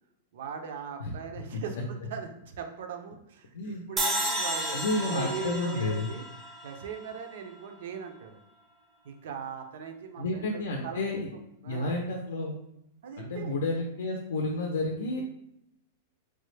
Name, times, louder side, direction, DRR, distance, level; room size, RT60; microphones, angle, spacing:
voice 1, 0.3-6.2 6.6-8.4 9.0-11.1 11.6-11.9 13.0-13.6, right 7 dB, 65° right, 5 dB, 0.5 m, -40 dB
sound 1, 4.0-7.2, right 1 dB, 10° right, 0.5 m, -32 dB
voice 2, 4.7-6.1 10.2-11.3 11.6-12.5 13.2-15.2, left 2 dB, 85° left, 1 dB, 0.5 m, -31 dB
3.2 x 2.0 x 3.2 m, 0.79 s
supercardioid pair, 165°, 0 cm